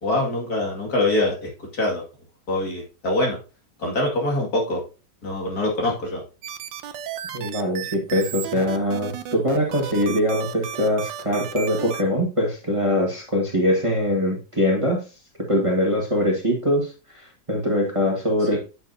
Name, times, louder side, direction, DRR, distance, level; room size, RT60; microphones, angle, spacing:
voice 1, 0.0-2.0 2.5-3.4 3.8-4.8 5.2-6.2 18.4-18.6, left 1 dB, 55° left, -1 dB, 2.7 m, -24 dB
sound 1, 6.4-12.0, right 10 dB, 80° right, 1.4 m, -34 dB
voice 2, 7.3-15.0 15.5-18.6, left 1 dB, 20° right, -1 dB, 1.6 m, -22 dB
8.9 x 6.5 x 2.7 m, 0.31 s
omnidirectional pair, 1.9 m